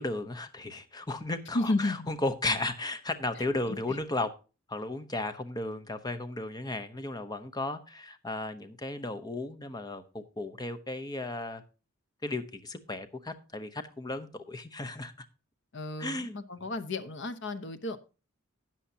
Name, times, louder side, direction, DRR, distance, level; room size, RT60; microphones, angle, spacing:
voice 1, 0.0-4.3 4.7-11.6 12.2-15.1 16.0-16.4, left 2 dB, 20° left, 0.8 m, -35 dB
voice 2, 1.5-2.1 15.7-18.0, left 2 dB, 60° left, 1.0 m, -32 dB
13.0 x 8.9 x 2.8 m
head